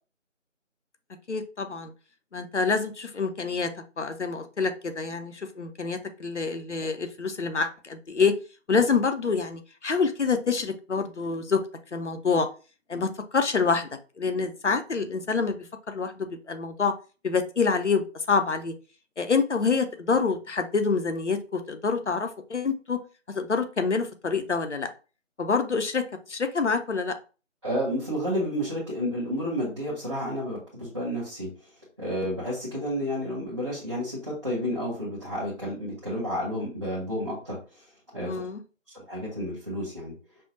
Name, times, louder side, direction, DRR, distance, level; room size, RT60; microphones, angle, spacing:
voice 1, 1.3-1.9 2.3-3.7 4.0-8.4 8.7-11.6 11.9-12.5 12.9-13.9 14.2-16.9 17.2-18.7 19.2-23.0 23.3-24.9 25.4-26.0 26.3-27.1 38.2-38.6, left 5 dB, 65° left, 7 dB, 0.7 m, -26 dB
voice 2, 27.6-31.7 32.0-38.4 38.9-40.1, equal, 25° right, -11 dB, 1.1 m, -31 dB
5.4 x 2.2 x 2.7 m, 0.34 s
figure-of-eight pair, 165°, 38 cm